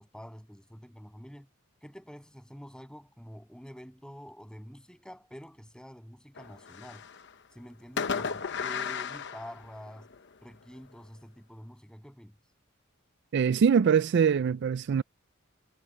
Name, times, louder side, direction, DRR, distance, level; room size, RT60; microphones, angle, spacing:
voice 1, 0.0-1.5 1.8-7.0 7.5-10.1 10.4-12.4, equal, 5° left, 7.1 m, -47 dB
Fireworks, 6.4-7.3 8.0-10.2, left 6 dB, 55° left, 0.9 m, -34 dB
voice 2, 13.3-15.0, right 7 dB, 55° right, 0.3 m, -23 dB
head